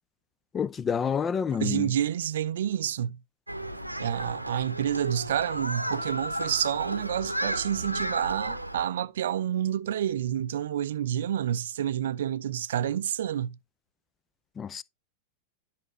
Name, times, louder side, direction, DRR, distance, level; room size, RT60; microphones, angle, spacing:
voice 1, 0.5-1.9 14.6-14.8, left 6 dB, 20° left, 0.4 m, -28 dB
voice 2, 1.6-3.2 4.0-13.6, right 10 dB, 60° right, 0.4 m, -29 dB
Human group actions, 3.5-8.9, right 1 dB, 90° right, 0.8 m, -33 dB
11.0 x 5.8 x 3.0 m
figure-of-eight pair, 90°, 0 cm